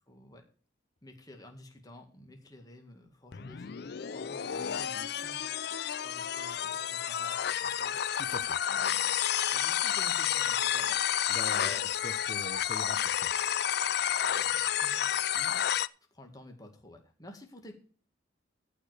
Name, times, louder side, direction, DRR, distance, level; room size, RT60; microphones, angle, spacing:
voice 1, 0.1-0.4 1.0-5.5 6.0-8.0 8.7-9.2 9.5-11.0 11.3-11.8 12.9-13.1 14.2-15.6 16.1-17.8, left 1 dB, 20° left, 3 dB, 2.0 m, -51 dB
sound 1, 3.3-15.9, left 10 dB, 55° left, 0.4 m, -30 dB
voice 2, 8.2-8.6 11.3-13.3, left 2 dB, 40° left, 11 dB, 0.9 m, -43 dB
14.0 x 5.0 x 6.6 m, 0.41 s
head